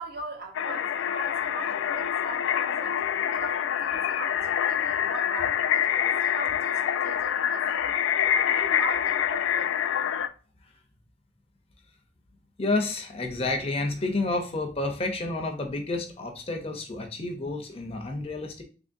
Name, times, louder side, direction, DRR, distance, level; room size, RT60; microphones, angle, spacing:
voice 1, 0.0-8.0 8.5-9.7, right 2 dB, 55° right, 0.9 m, -40 dB
sound 1, 0.5-10.3, left 9 dB, 90° left, 0.3 m, -26 dB
voice 2, 12.6-18.6, left 2 dB, 30° left, 0.6 m, -30 dB
3.5 x 3.4 x 2.5 m
head